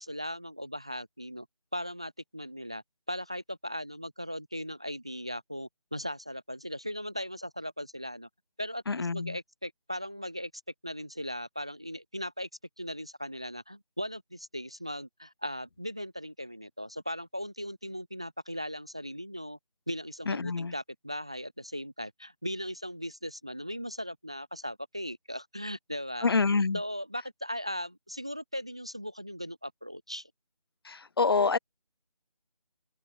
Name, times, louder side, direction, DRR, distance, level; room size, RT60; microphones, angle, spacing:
voice 1, 0.0-1.5 1.7-8.3 8.6-10.5 10.8-12.5 12.8-19.6 19.9-26.4 26.7-30.3, equal, 10° right, 0.5 m, -38 dB
voice 2, 8.9-9.4 20.3-20.7 26.2-26.8 30.8-31.6, left 4 dB, 40° left, 1.2 m, -26 dB
open air
figure-of-eight pair, 160°, 20 cm